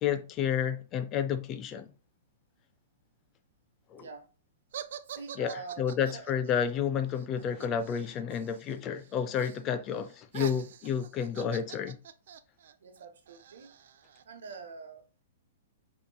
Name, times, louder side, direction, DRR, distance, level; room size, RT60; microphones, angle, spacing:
voice 1, 0.0-1.9 3.9-4.1 5.4-12.0, left 8 dB, 25° left, 0.4 m, -31 dB
voice 2, 4.0-4.3 5.0-6.3 12.8-13.7 14.2-15.2, right 4 dB, 80° right, 1.0 m, -45 dB
sound 1, 4.7-8.7 9.0-9.6 9.9-14.5, right 9 dB, 65° right, 0.3 m, -45 dB
5.0 x 2.9 x 2.2 m
hypercardioid pair, 155°, 0 cm